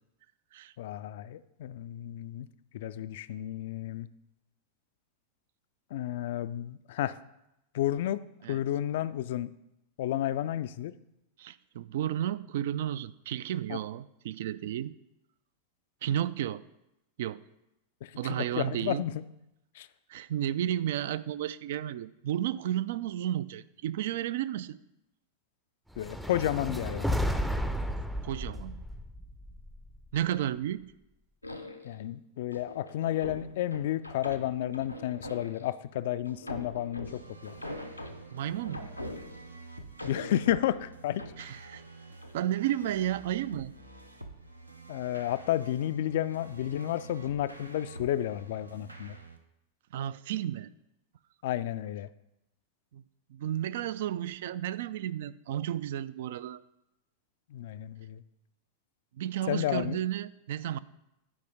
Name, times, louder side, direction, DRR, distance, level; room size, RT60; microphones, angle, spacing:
voice 1, 0.8-2.5 2.7-4.1 5.9-7.2 7.7-8.2 8.5-9.5 10.0-11.0 13.7-13.8 18.0-19.2 19.7-19.9 26.0-27.1 31.8-37.5 40.0-41.2 44.9-49.2 51.4-52.1 57.5-58.2 59.5-60.0, left 12 dB, 55° left, 15 dB, 0.3 m, -32 dB
voice 2, 11.4-14.9 16.0-16.6 17.2-17.4 18.2-19.0 20.1-24.8 28.2-28.8 30.1-30.8 38.3-38.9 41.4-41.8 42.3-43.7 49.9-50.7 52.9-53.0 53.3-56.6 59.2-60.8, right 11 dB, 55° right, 16 dB, 0.3 m, -32 dB
sound 1, 25.9-30.2, equal, ahead, 0.5 m, -33 dB
sound 2, 31.4-32.0 32.5-35.8 36.3-39.6 40.0-41.9 42.2-42.4, left 1 dB, 85° left, 0.7 m, -43 dB
sound 3, 37.0-49.4, right 3 dB, 85° right, 0.8 m, -49 dB
9.4 x 4.8 x 5.2 m, 0.86 s
figure-of-eight pair, 90°, 0 cm